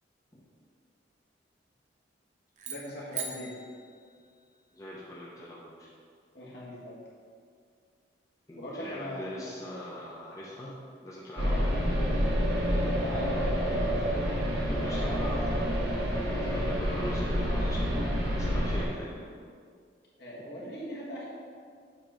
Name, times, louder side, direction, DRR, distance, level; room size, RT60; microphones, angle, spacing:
sound 1, 2.6-4.9, right 6 dB, 40° right, 0.6 m, -41 dB
voice 1, 2.7-3.6 6.3-7.0 8.5-9.5 11.4-11.7 12.6-13.9 14.5-15.2 20.2-21.3, left 1 dB, 60° left, -5 dB, 1.5 m, -40 dB
voice 2, 4.7-5.9 8.5-10.7 11.0-11.7 14.7-15.7 16.4-18.1 18.4-19.2, left 1 dB, 20° left, -7 dB, 0.8 m, -41 dB
sound 2, 11.4-18.9, equal, 65° right, 1.1 m, -28 dB
7.7 x 3.0 x 4.9 m, 2.1 s
head